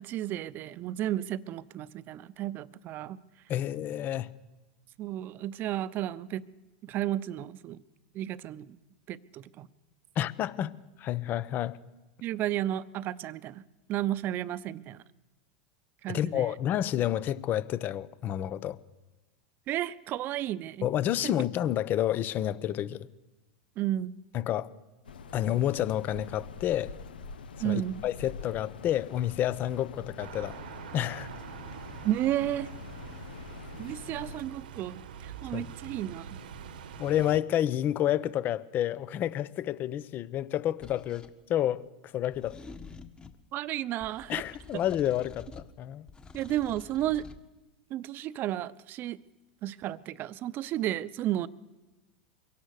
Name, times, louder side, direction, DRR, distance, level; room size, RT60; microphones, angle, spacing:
voice 1, 0.0-3.2 5.0-6.4 6.8-7.8 8.1-8.8 9.1-9.7 12.2-13.6 13.9-15.0 16.0-16.5 19.7-20.9 21.2-21.3 23.8-24.1 27.6-28.0 32.0-32.7 33.8-36.3 43.5-44.3 46.3-47.2 47.9-49.2 49.6-51.5, right 13 dB, 45° right, 0.9 m, -32 dB
voice 2, 3.5-4.3 10.2-11.8 16.1-18.8 20.8-23.1 24.3-24.7 25.3-26.9 27.6-30.6 30.9-31.3 35.5-35.7 37.0-41.8 42.1-42.6 44.3-46.1, left 11 dB, 40° left, 1.0 m, -29 dB
sound 1, 25.0-34.4, left 5 dB, 90° left, 1.2 m, -45 dB
sound 2, 30.2-37.4, right 7 dB, 80° right, 1.4 m, -44 dB
sound 3, 40.8-41.3 42.3-43.4 44.0-45.7 46.1-47.4, left 4 dB, 20° left, 1.5 m, -48 dB
24.0 x 17.0 x 6.7 m
hypercardioid pair, 100°, 5 cm